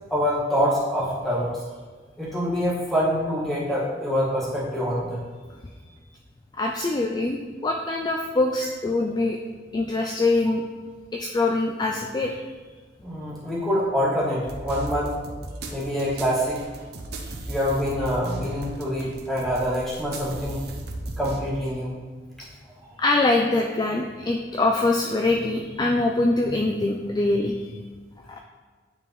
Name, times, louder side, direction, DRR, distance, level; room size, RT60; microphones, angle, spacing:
voice 1, 0.1-1.5 2.2-5.2 13.0-15.1 15.7-16.6 17.5-20.6 21.2-21.9, equal, ahead, -8 dB, 1.7 m, -25 dB
voice 2, 6.6-9.4 9.7-10.6 11.1-12.4 23.0-27.5 28.3-28.4, left 2 dB, 20° left, 1 dB, 0.3 m, -23 dB
sound 1, 14.4-21.4, right 2 dB, 55° right, 0.6 m, -36 dB
9.4 x 3.5 x 3.1 m, 1.4 s
head